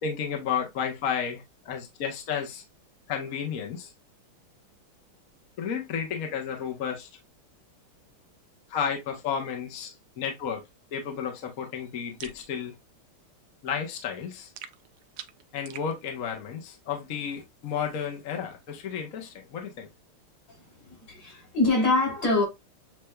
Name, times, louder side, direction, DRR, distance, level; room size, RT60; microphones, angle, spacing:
voice 1, 0.0-2.6 3.1-3.9 5.6-7.1 8.7-10.6 10.9-12.7 13.6-14.5 15.5-19.9, left 7 dB, 50° left, 1.2 m, -32 dB
sound 1, 12.2-12.4 14.6-15.9, right 10 dB, 85° right, 0.9 m, -43 dB
voice 2, 20.8-22.5, left 2 dB, 75° left, 3.8 m, -24 dB
7.7 x 2.6 x 2.2 m
omnidirectional pair, 2.4 m